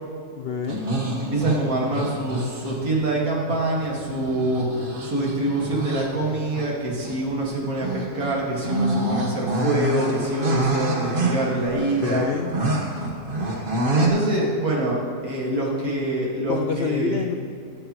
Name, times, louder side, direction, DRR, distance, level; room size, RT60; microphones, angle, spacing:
voice 1, 0.3-0.9 12.0-12.5 16.5-17.4, left 6 dB, 80° left, 5 dB, 0.5 m, -27 dB
sound 1, 0.7-3.1 3.8-6.7 7.0-7.1 7.8-14.1, right 1 dB, 35° right, 1.5 m, -27 dB
voice 2, 1.2-4.7 5.0-12.3 14.0-17.2, right 1 dB, 60° right, -3 dB, 2.5 m, -25 dB
16.0 x 11.5 x 3.1 m, 2.3 s
omnidirectional pair, 1.7 m